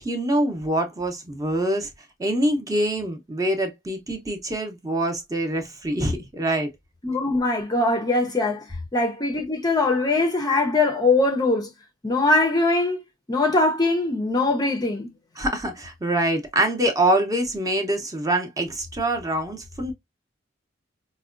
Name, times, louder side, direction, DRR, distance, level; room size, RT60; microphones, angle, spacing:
voice 1, 0.0-1.9 2.2-6.7 15.4-19.9, right 1 dB, 20° right, 0.7 m, -25 dB
voice 2, 7.0-11.7 12.0-13.0 13.3-15.1, left 2 dB, 20° left, 0.5 m, -22 dB
4.7 x 2.1 x 2.4 m
head